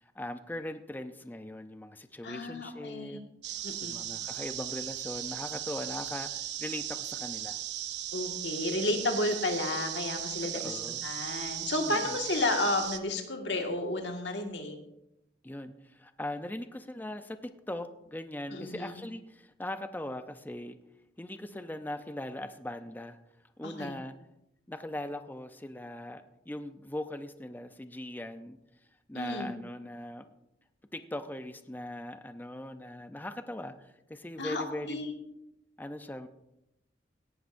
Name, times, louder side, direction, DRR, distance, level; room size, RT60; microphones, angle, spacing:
voice 1, 0.0-3.5 3.8-7.6 10.5-11.0 11.9-12.2 15.4-20.8 21.2-23.2 23.6-24.1 24.7-28.6 29.1-30.3 30.9-35.0 35.8-36.3, left 1 dB, 10° left, 9 dB, 0.5 m, -40 dB
voice 2, 2.2-3.2 3.6-4.0 8.1-14.8 18.5-19.0 23.6-23.9 29.1-29.5 34.4-35.1, left 2 dB, 75° left, 3 dB, 1.8 m, -32 dB
sound 1, 3.4-13.0, right 11 dB, 70° right, 0.7 m, -37 dB
17.5 x 11.5 x 2.6 m, 0.85 s
head